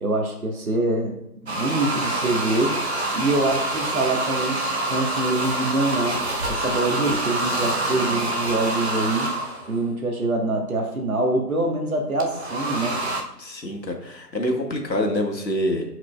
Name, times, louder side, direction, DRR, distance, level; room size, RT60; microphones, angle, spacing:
voice 1, 0.0-1.1 1.5-2.8 3.1-9.3 9.7-13.0, right 2 dB, 60° right, 1 dB, 1.4 m, -25 dB
sound 1, 1.5-9.8 12.2-13.2, right 1 dB, 40° right, 0.8 m, -26 dB
voice 2, 13.4-15.8, left 1 dB, 85° left, 2 dB, 1.8 m, -26 dB
10.5 x 5.0 x 2.3 m, 0.85 s
figure-of-eight pair, 160°, 50 cm